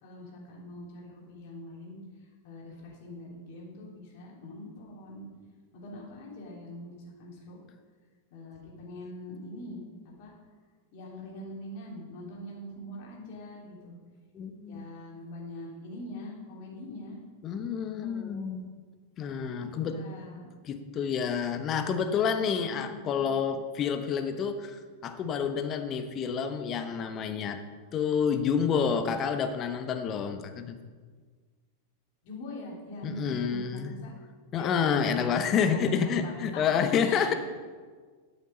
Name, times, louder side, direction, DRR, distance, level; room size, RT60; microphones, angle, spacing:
voice 1, 0.0-2.0 2.4-5.3 5.7-7.6 8.3-9.8 10.2-10.3 10.9-14.0 14.7-17.2 17.7-18.5 19.6-20.5 22.4-23.3 32.2-34.1 34.6-36.6 37.0-37.4, left 1 dB, 50° left, -3 dB, 3.5 m, -43 dB
voice 2, 14.3-14.9 17.4-18.7 19.2-20.0 20.6-27.6 27.9-30.8 33.0-33.9 34.5-37.3, left 7 dB, 30° left, 8 dB, 1.0 m, -29 dB
12.5 x 7.2 x 5.4 m, 1.5 s
figure-of-eight pair, 90°, 0 cm